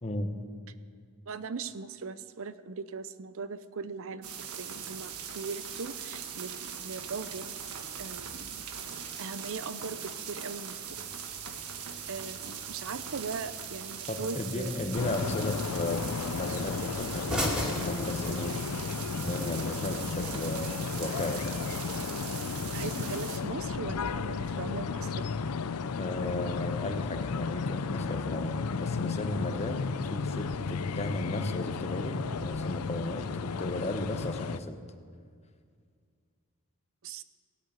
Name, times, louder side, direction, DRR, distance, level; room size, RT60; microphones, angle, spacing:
voice 1, 0.0-0.5 14.1-16.1 16.3-18.6 19.2-21.6 26.0-34.8, left 2 dB, 30° left, 8 dB, 1.1 m, -35 dB
voice 2, 1.3-7.5 8.0-8.6 9.2-11.0 12.1-14.9 22.7-25.3 37.0-37.2, right 4 dB, 65° right, 13 dB, 0.7 m, -39 dB
sound 1, 4.2-23.4, right 7 dB, 85° right, 1.4 m, -41 dB
sound 2, 10.9-18.9, equal, 5° right, 2.7 m, -40 dB
sound 3, 14.9-34.6, left 5 dB, 85° left, 0.5 m, -34 dB
17.5 x 8.6 x 9.2 m, 2.1 s
head